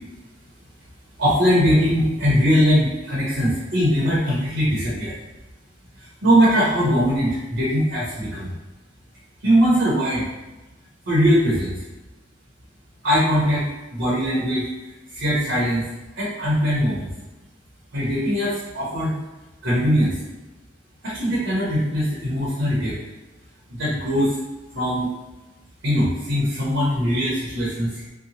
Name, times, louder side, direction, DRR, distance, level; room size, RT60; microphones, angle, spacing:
voice 1, 1.2-5.1 6.0-8.5 9.4-10.3 11.1-11.8 13.0-14.7 15.1-15.9 16.1-17.1 17.9-19.1 19.6-20.2 21.0-22.9 23.7-24.3 24.7-25.1 25.8-28.0, equal, 80° right, -8 dB, 0.9 m, -21 dB
2.9 x 2.2 x 2.7 m, 1.1 s
head